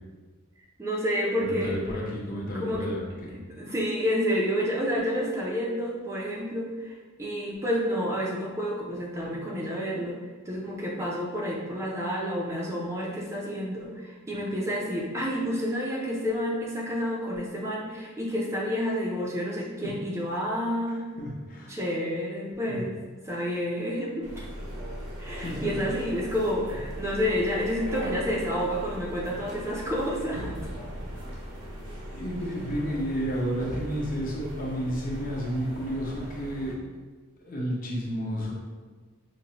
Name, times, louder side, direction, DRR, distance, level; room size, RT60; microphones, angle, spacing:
voice 1, 0.8-1.8 2.5-2.9 3.5-10.2 10.5-21.2 21.7-22.9 23.2-24.4 25.2-30.5, equal, 15° right, -4 dB, 0.4 m, -29 dB
voice 2, 1.4-3.3 20.9-21.7 22.7-22.8 25.4-26.1 31.9-36.8 37.4-38.5, equal, 40° left, -3 dB, 0.8 m, -32 dB
sound 1, 24.2-36.8, equal, 80° right, 0.8 m, -39 dB
5.1 x 2.1 x 2.8 m, 1.4 s
head